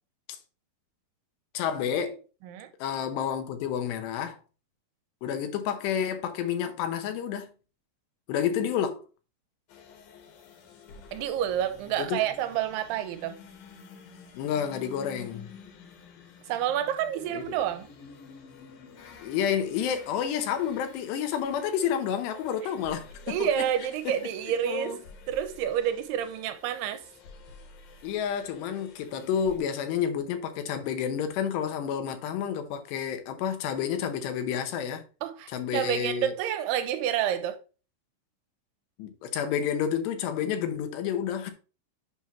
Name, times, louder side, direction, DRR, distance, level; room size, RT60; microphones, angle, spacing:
voice 1, 1.5-2.2 2.8-4.4 5.2-7.5 8.3-9.0 12.0-12.2 14.4-15.5 17.3-17.6 19.2-23.6 24.7-25.0 28.0-35.0 35.5-36.3 39.0-41.5, left 8 dB, 90° left, 3.2 m, -30 dB
sound 1, 9.7-29.6, left 5 dB, 65° left, 2.8 m, -50 dB
voice 2, 11.1-13.4 16.5-17.9 23.3-27.0 35.2-37.6, right 10 dB, 85° right, 2.7 m, -29 dB
7.9 x 5.8 x 3.0 m
omnidirectional pair, 4.8 m